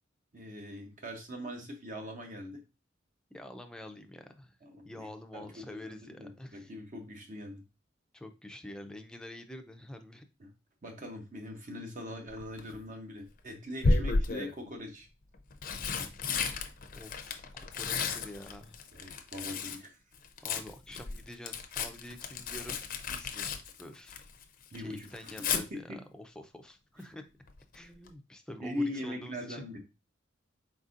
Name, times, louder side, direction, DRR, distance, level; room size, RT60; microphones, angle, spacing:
voice 1, 0.3-2.6 4.6-7.6 10.4-10.5 10.8-15.1 19.0-20.0 24.7-26.0 28.6-29.8, left 1 dB, 45° right, 3 dB, 0.8 m, -41 dB
voice 2, 3.3-4.6 4.8-6.7 8.1-10.2 17.0-18.8 20.4-24.3 24.8-27.3 27.7-29.7, left 1 dB, 5° left, 6 dB, 0.5 m, -47 dB
Tearing, 12.3-12.8 13.8-14.6 15.3-19.8 20.1-24.4 24.7-25.6 27.5-27.8 28.1-28.2, left 3 dB, 45° left, 0.6 m, -33 dB
4.3 x 4.1 x 2.5 m, 0.29 s
head